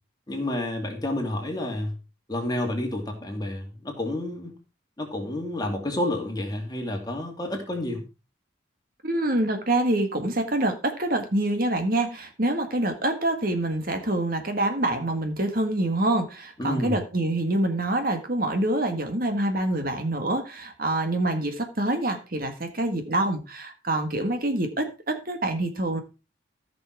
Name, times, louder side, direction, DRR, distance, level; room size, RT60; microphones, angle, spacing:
voice 1, 0.3-2.0 2.3-4.6 5.0-8.0 16.6-17.0, left 1 dB, 20° left, 2 dB, 2.5 m, -30 dB
voice 2, 9.0-26.0, right 1 dB, 45° right, 7 dB, 1.7 m, -26 dB
14.5 x 6.1 x 4.6 m, 0.30 s
head